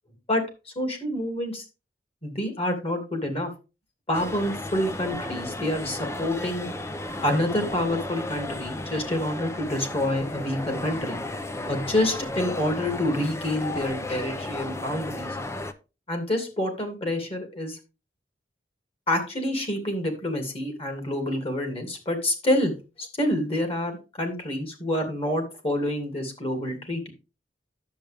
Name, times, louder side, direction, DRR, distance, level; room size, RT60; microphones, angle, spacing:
voice 1, 0.7-1.6 2.2-3.5 4.1-6.7 7.2-11.2 11.7-15.4 16.1-17.8 19.1-22.7 23.0-27.1, left 1 dB, 35° left, 5 dB, 2.8 m, -27 dB
sound 1, 4.1-15.7, left 2 dB, 15° left, 0.7 m, -34 dB
10.5 x 7.8 x 3.5 m, 0.30 s
head